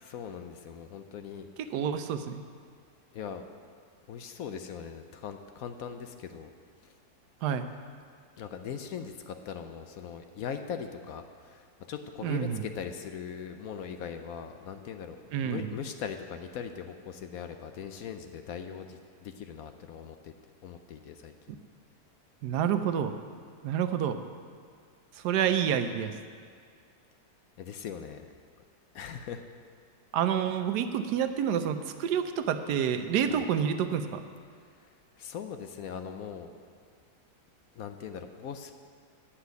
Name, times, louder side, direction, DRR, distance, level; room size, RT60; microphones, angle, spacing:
voice 1, 0.0-1.5 3.1-3.5 4.1-6.5 8.4-20.3 20.6-21.3 27.6-28.2 28.9-29.4 33.3-33.4 35.2-36.5 37.7-38.7, left 7 dB, 70° left, 7 dB, 1.0 m, -40 dB
voice 2, 1.7-2.4 7.4-7.7 12.2-12.6 15.3-15.8 22.4-23.1 23.6-24.2 25.1-26.1 30.1-34.2, right 8 dB, 80° right, 9 dB, 1.2 m, -28 dB
10.0 x 5.8 x 8.1 m, 2.1 s
omnidirectional pair, 1.8 m